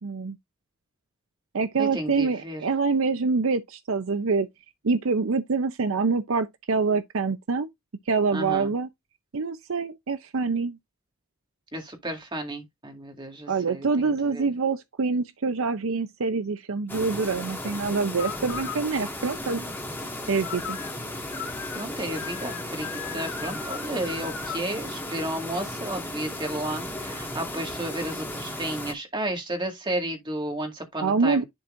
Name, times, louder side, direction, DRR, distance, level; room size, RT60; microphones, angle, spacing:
voice 1, 0.0-0.4 1.5-4.5 4.8-7.7 8.1-8.9 9.3-10.8 13.5-19.7 20.3-20.8 31.0-31.4, right 4 dB, 70° right, 0.6 m, -25 dB
voice 2, 1.8-2.6 8.3-8.7 11.7-14.5 21.7-31.4, right 1 dB, 20° right, 2.0 m, -33 dB
sound 1, 16.9-28.9, left 1 dB, 10° left, 2.0 m, -35 dB
sound 2, 18.2-24.6, left 7 dB, 70° left, 2.3 m, -39 dB
10.5 x 4.3 x 2.6 m
head